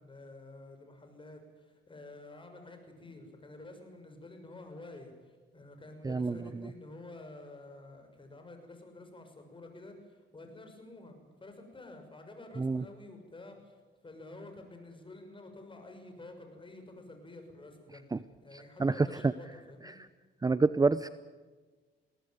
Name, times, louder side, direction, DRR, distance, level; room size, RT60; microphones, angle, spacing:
voice 1, 0.0-20.0, left 2 dB, 25° left, 6 dB, 6.6 m, -50 dB
voice 2, 6.0-6.7 12.6-12.8 18.1-18.2 18.8-19.3 19.8-19.9 20.4-21.1, right 3 dB, 20° right, 15 dB, 0.7 m, -28 dB
22.0 x 18.0 x 9.3 m, 1.3 s
cardioid pair, 90°, 20 cm